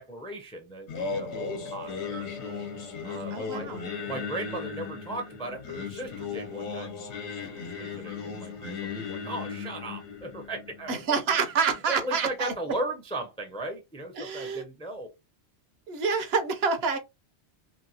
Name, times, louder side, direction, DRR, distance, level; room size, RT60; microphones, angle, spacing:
voice 1, 0.0-2.2 3.0-3.7 4.1-11.2 11.9-15.1, right 2 dB, 10° left, 0.4 m, -37 dB
Singing, 0.9-12.0, left 5 dB, 75° left, 1.0 m, -36 dB
voice 2, 3.3-3.8 10.9-12.5 14.2-14.6 15.9-17.0, right 5 dB, 70° right, 0.8 m, -27 dB
2.9 x 2.6 x 2.7 m
omnidirectional pair, 1.2 m